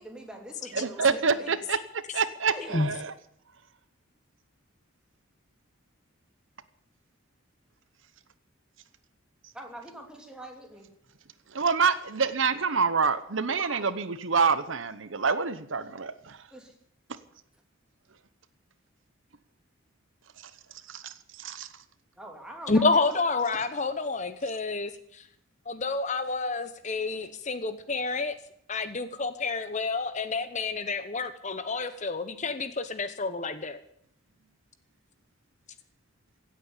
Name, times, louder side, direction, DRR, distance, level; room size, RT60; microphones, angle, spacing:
voice 1, 0.0-1.6 2.5-3.0 9.5-10.9 13.5-13.9 16.5-16.8 22.2-23.2, right 1 dB, 5° right, 2 dB, 2.8 m, -43 dB
voice 2, 0.7-1.8 2.1-3.0 11.5-16.4 20.9-21.7, right 5 dB, 65° right, 14 dB, 0.9 m, -27 dB
voice 3, 22.7-25.2 25.7-28.3 28.7-33.8, left 3 dB, 35° left, 11 dB, 1.0 m, -29 dB
16.5 x 8.6 x 9.7 m, 0.69 s
head